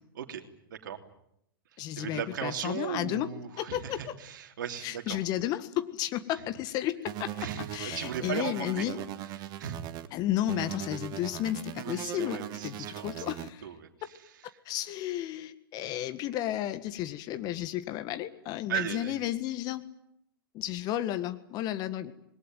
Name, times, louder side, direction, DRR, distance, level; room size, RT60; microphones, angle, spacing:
voice 1, 0.1-1.0 2.0-5.2 7.4-7.7 7.9-9.0 9.4-9.8 11.8-13.1 13.6-14.1 18.7-19.2, right 9 dB, 55° right, 6 dB, 3.3 m, -37 dB
voice 2, 1.8-4.2 4.8-9.0 10.1-13.7 14.6-19.8 20.5-22.1, left 13 dB, 35° left, 11 dB, 1.7 m, -33 dB
sound 1, 7.1-10.1 10.5-13.5, right 12 dB, 35° right, 1.7 m, -39 dB
26.5 x 21.0 x 9.3 m, 0.77 s
figure-of-eight pair, 110°, 12 cm